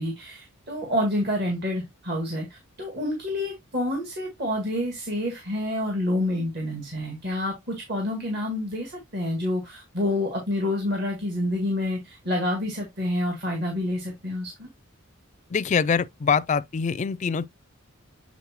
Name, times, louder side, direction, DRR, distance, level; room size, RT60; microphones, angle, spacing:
voice 1, 0.0-14.7, left 1 dB, 50° right, 1.9 m, -28 dB
voice 2, 15.5-17.5, left 6 dB, 35° left, 0.3 m, -24 dB
8.3 x 4.2 x 2.9 m
head